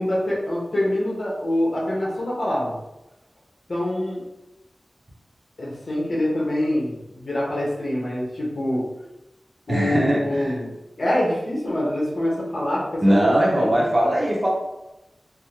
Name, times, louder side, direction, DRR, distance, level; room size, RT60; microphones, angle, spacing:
voice 1, 0.0-2.8 3.7-4.2 5.6-8.9 9.7-10.7 11.0-13.7 14.0-14.1, left 1 dB, 65° left, -5 dB, 1.1 m, -25 dB
voice 2, 9.7-10.5 13.0-14.5, right 1 dB, 35° right, -4 dB, 0.8 m, -20 dB
3.5 x 2.2 x 2.9 m, 0.94 s
wide cardioid pair, 70°, 0 cm